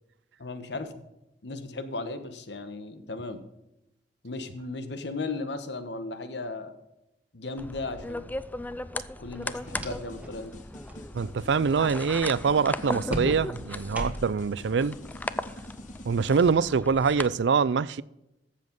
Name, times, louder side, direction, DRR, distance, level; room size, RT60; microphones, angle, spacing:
voice 1, 0.4-0.9 1.4-3.4 4.2-6.8 7.3-8.4 9.2-10.5, left 3 dB, 70° left, 1.3 m, -36 dB
sound 1, 7.6-17.3, left 2 dB, 10° left, 0.4 m, -37 dB
sound 2, 9.3-10.4 10.7-11.0 13.1-14.5, equal, 10° right, 1.6 m, -37 dB
sound 3, 9.7-16.5, left 1 dB, 45° left, 1.4 m, -46 dB
voice 2, 11.1-15.0 16.0-18.0, right 5 dB, 75° right, 0.4 m, -24 dB
14.0 x 7.5 x 5.3 m
head